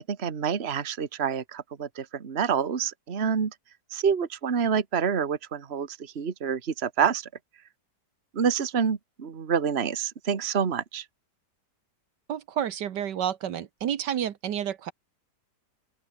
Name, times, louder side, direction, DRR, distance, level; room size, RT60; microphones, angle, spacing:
voice 1, 0.1-3.5 3.9-5.9 6.1-7.3 8.3-11.0, right 7 dB, 40° right, 1.7 m, -27 dB
voice 2, 12.3-14.9, right 9 dB, 85° right, 1.7 m, -30 dB
open air
omnidirectional pair, 1.8 m